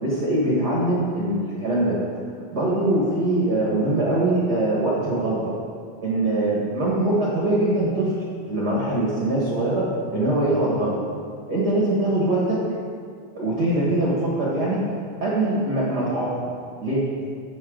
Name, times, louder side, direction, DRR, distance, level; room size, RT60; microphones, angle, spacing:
voice 1, 0.0-2.0 2.5-5.5 6.0-9.8 10.1-10.9 11.5-12.6 13.3-14.8 15.2-16.5 16.8-17.0, right 1 dB, 55° right, -6 dB, 1.1 m, -22 dB
13.0 x 7.9 x 3.9 m, 2.2 s
omnidirectional pair, 4.4 m